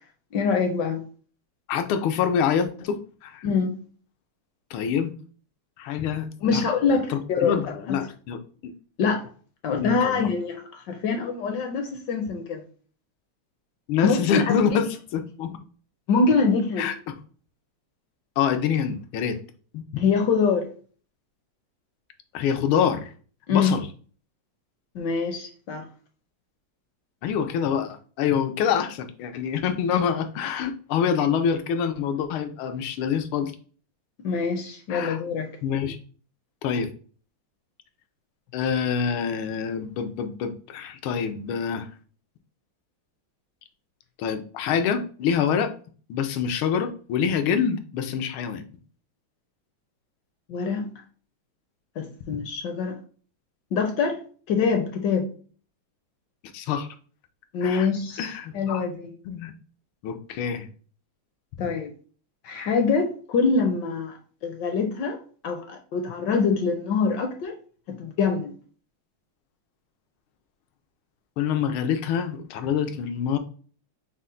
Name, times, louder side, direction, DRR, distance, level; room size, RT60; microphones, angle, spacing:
voice 1, 0.3-1.0 3.4-3.8 6.4-7.6 7.9-8.0 9.0-9.3 9.6-12.6 14.0-14.5 16.1-16.9 20.0-20.7 23.5-23.7 24.9-25.9 34.2-35.5 50.5-50.9 52.0-53.0 53.7-54.2 54.5-55.3 57.5-59.1 61.6-61.9 62.4-65.2 65.4-67.5 67.9-68.5, left 5 dB, 75° left, 1.1 m, -24 dB
voice 2, 1.7-3.4 4.7-5.1 5.8-8.7 9.8-10.3 13.9-15.6 16.8-17.1 18.4-19.4 19.7-20.0 22.3-23.1 23.5-23.9 27.2-33.5 34.9-35.2 35.6-36.0 36.6-36.9 38.5-41.9 44.2-45.7 46.1-48.6 56.5-56.9 57.6-57.9 58.2-58.8 59.3-59.5 60.0-60.7 71.4-73.4, left 7 dB, 90° left, 1.5 m, -26 dB
5.5 x 2.0 x 3.7 m
omnidirectional pair, 2.3 m